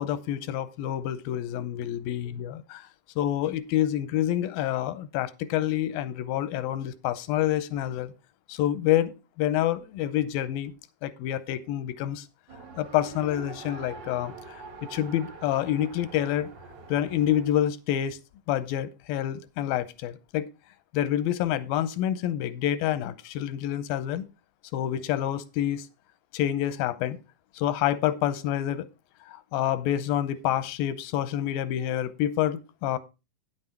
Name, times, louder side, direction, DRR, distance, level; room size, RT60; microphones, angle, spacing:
voice 1, 0.0-2.9 3.2-8.1 8.5-10.7 11.0-12.3 12.8-14.6 14.9-16.5 16.9-18.2 18.5-20.5 20.9-24.3 24.7-25.9 26.3-27.2 27.5-28.9 29.3-33.0, left 12 dB, 90° left, 15 dB, 2.5 m, -27 dB
Race car auto racing, 12.5-17.7, right 4 dB, 70° right, 1.0 m, -44 dB
9.9 x 7.7 x 4.4 m, 0.28 s
omnidirectional pair, 4.1 m